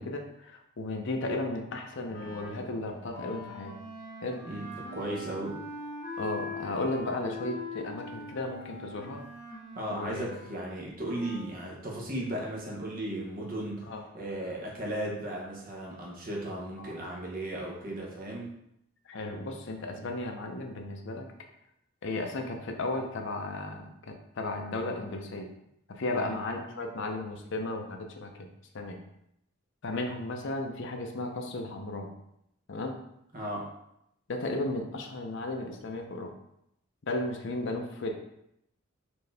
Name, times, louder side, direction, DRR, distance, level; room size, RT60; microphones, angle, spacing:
voice 1, 0.0-3.7 4.2-4.4 6.2-9.2 9.9-10.2 13.9-14.0 16.8-16.9 19.1-21.3 22.0-25.5 25.9-28.5 28.7-29.0 29.8-32.1 32.7-33.0 34.3-36.3 37.1-38.1, left 2 dB, 55° left, 3 dB, 0.6 m, -34 dB
Wind instrument woodwind instrument, 2.1-11.6, left 2 dB, 40° left, 1.0 m, -43 dB
voice 2, 4.4-5.6 9.8-18.5 26.1-26.3 33.3-33.7, right 1 dB, 40° right, -2 dB, 1.0 m, -36 dB
4.3 x 2.8 x 3.3 m, 0.78 s
head